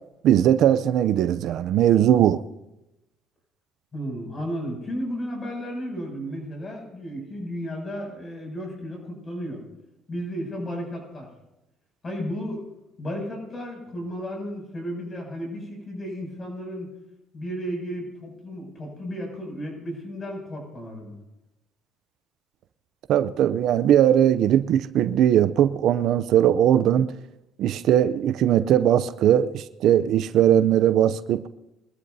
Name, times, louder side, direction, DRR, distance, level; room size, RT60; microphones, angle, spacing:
voice 1, 0.2-2.4 23.1-27.1 27.6-31.5, right 10 dB, 65° right, 14 dB, 0.5 m, -19 dB
voice 2, 3.9-9.6 10.1-11.3 12.0-12.7 13.0-16.9 17.3-21.2, equal, 30° left, 1 dB, 6.9 m, -33 dB
23.5 x 13.5 x 2.7 m, 0.92 s
cardioid pair, 95°, 0 cm